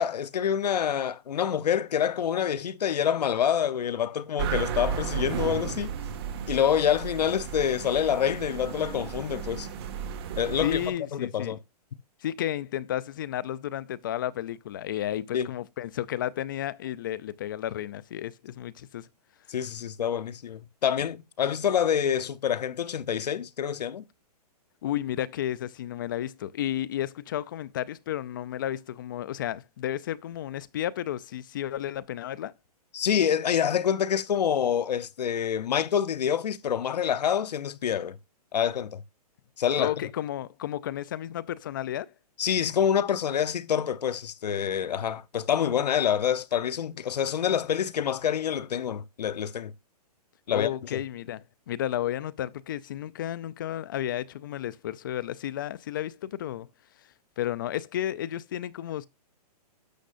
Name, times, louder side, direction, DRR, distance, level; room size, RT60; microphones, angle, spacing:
voice 1, 0.0-5.9 6.5-9.7 10.4-10.8 11.2-11.6 15.3-15.5 19.5-24.0 32.9-38.2 38.5-39.0 39.6-39.9 42.4-49.7 50.5-51.0, left 8 dB, 85° left, 0.8 m, -27 dB
sound 1, 4.4-10.9, right 8 dB, 40° right, 1.8 m, -34 dB
voice 2, 10.6-11.6 12.2-19.1 24.8-32.5 39.8-42.1 50.5-56.7 57.4-59.1, left 12 dB, 30° left, 0.4 m, -32 dB
11.5 x 6.5 x 2.5 m
hypercardioid pair, 165°, 20 cm